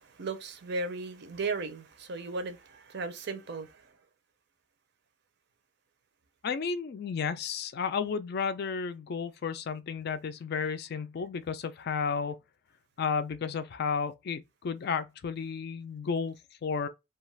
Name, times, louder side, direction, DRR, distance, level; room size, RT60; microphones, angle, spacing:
voice 1, 0.0-3.9, right 3 dB, 55° right, 0.5 m, -36 dB
voice 2, 6.4-12.4 13.0-16.9, left 5 dB, 50° left, 0.3 m, -32 dB
2.3 x 2.3 x 3.1 m
head